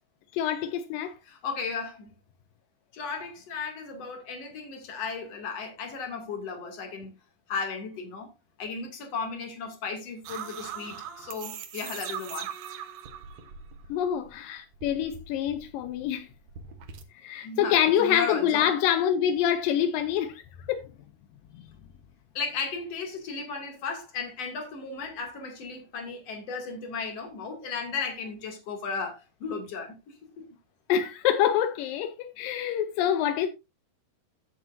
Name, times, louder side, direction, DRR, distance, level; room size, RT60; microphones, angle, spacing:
voice 1, 0.3-1.1 13.9-16.3 17.2-20.4 20.7-20.8 21.5-21.6 30.9-33.5, left 9 dB, 80° left, 2.0 m, -26 dB
voice 2, 1.3-2.1 2.9-7.1 7.5-8.3 8.6-12.5 17.4-18.7 22.3-30.0 30.4-30.5, left 5 dB, 40° left, 3.1 m, -35 dB
sound 1, 10.2-14.3 14.6-17.0, right 8 dB, 80° right, 1.5 m, -41 dB
15.0 x 7.4 x 2.6 m
omnidirectional pair, 4.9 m